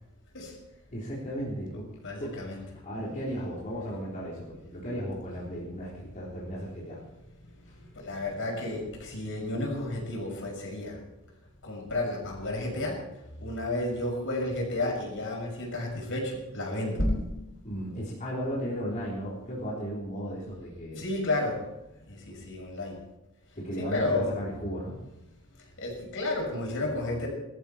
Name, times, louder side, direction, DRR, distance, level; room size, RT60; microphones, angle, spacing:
voice 1, 0.9-1.9 2.2-2.3 2.8-7.0 7.7-7.8 17.6-21.0 23.6-25.0, equal, 35° left, -7 dB, 3.8 m, -35 dB
voice 2, 1.7-2.6 8.0-11.0 11.6-13.0 13.4-17.4 21.0-21.6 22.1-23.0 23.8-24.4 25.8-27.3, left 2 dB, 60° left, 0 dB, 6.2 m, -31 dB
20.0 x 13.5 x 4.4 m, 0.93 s
head